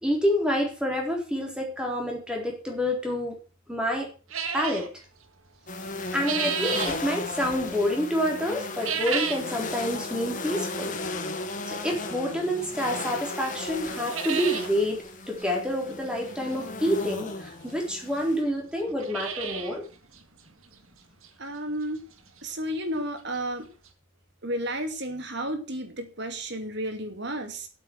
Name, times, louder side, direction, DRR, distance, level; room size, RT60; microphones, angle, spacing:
voice 1, 0.0-3.3 3.7-4.1 4.5-4.9 6.1-10.9 11.7-15.0 15.3-19.8, equal, 5° right, 0 dB, 3.9 m, -28 dB
sound 1, 4.3-4.9 5.8-7.0 8.7-9.5 9.9-10.0 10.8-10.9 12.6-12.7 13.2-13.3 13.5-13.6 13.9-14.7 15.1-15.2 15.4-15.5 17.0-17.1 17.9-18.0 18.2-18.3 18.8-19.8 20.1-20.2 20.7-20.8 21.2-21.3 23.1-23.2 23.3-23.4 23.9-24.0, right 7 dB, 80° right, 1.9 m, -31 dB
sound 2, 5.7-18.4, left 3 dB, 40° left, 1.6 m, -36 dB
voice 2, 21.4-22.0 22.4-23.7 24.4-27.7, right 1 dB, 55° right, 6 dB, 2.6 m, -32 dB
8.6 x 8.5 x 8.0 m, 0.37 s
head